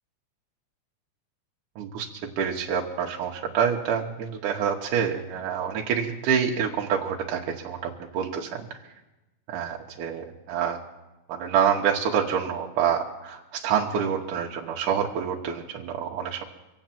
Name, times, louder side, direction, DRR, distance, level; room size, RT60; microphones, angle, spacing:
voice 1, 1.8-8.9 9.5-10.8 11.3-16.4, right 7 dB, 75° right, -1 dB, 2.5 m, -27 dB
24.5 x 8.5 x 5.9 m, 1.0 s
omnidirectional pair, 3.8 m